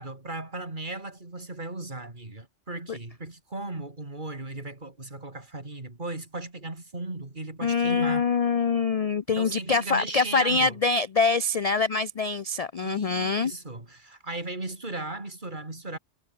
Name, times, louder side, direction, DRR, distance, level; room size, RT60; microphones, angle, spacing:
voice 1, 0.0-8.3 9.3-10.8 12.8-16.0, right 2 dB, 40° right, 3.4 m, -36 dB
voice 2, 7.6-13.5, left 4 dB, 45° left, 0.5 m, -24 dB
omnidirectional pair, 1.3 m